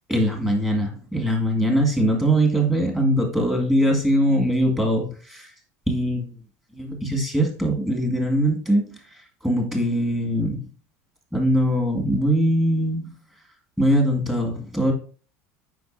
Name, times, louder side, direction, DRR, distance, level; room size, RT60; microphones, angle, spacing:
voice 1, 0.1-5.5 5.9-6.3 6.7-9.0 9.4-10.7 11.3-13.1 13.8-14.9, equal, 5° right, 0 dB, 1.9 m, -22 dB
7.8 x 5.6 x 2.6 m, 0.41 s
supercardioid pair, 135°, 7 cm